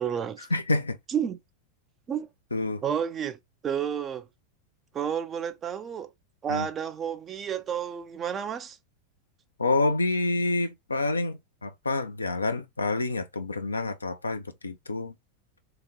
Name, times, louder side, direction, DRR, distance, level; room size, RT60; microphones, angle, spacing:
voice 1, 0.0-0.5 1.1-1.4 2.1-2.3 2.8-4.3 4.9-6.1 6.4-8.8, right 8 dB, 25° right, 0.5 m, -31 dB
voice 2, 0.5-1.0 2.5-2.8 6.5-6.7 9.6-15.1, left 2 dB, 80° left, 0.6 m, -28 dB
3.6 x 3.0 x 3.7 m
figure-of-eight pair, 85°, 0 cm